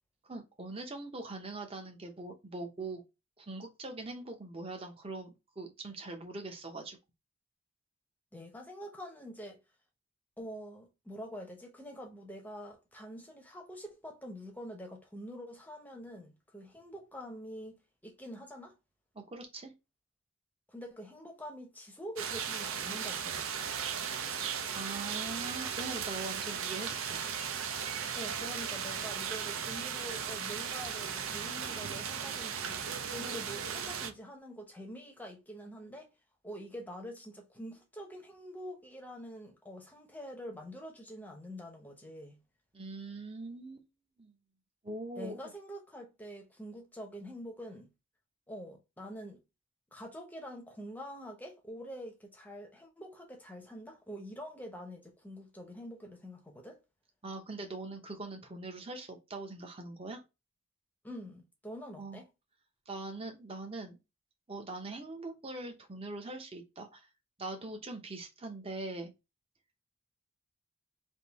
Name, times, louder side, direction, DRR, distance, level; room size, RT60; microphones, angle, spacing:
voice 1, 0.3-3.0 3.4-7.0 19.1-19.7 24.7-27.2 42.7-43.9 44.2-44.3 44.8-45.4 57.2-60.2 62.0-62.2 62.9-64.0 64.5-67.1 67.4-69.1, right 2 dB, 25° right, 0.7 m, -42 dB
voice 2, 8.3-9.6 10.4-18.8 20.7-23.7 28.1-36.1 36.4-42.4 45.2-47.9 48.5-49.4 49.9-56.8 61.0-62.3, equal, 10° left, 0.7 m, -46 dB
sound 1, 22.2-34.1, right 7 dB, 70° right, 0.6 m, -36 dB
3.6 x 2.6 x 4.0 m
head